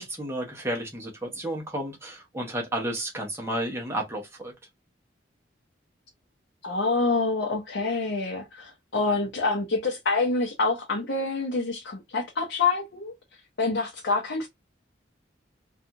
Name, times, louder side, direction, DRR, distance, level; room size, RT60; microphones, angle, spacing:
voice 1, 0.0-4.5, right 1 dB, 15° right, 0.8 m, -32 dB
voice 2, 6.6-13.1 13.6-14.5, left 3 dB, 65° left, 0.7 m, -26 dB
2.5 x 2.3 x 2.7 m
head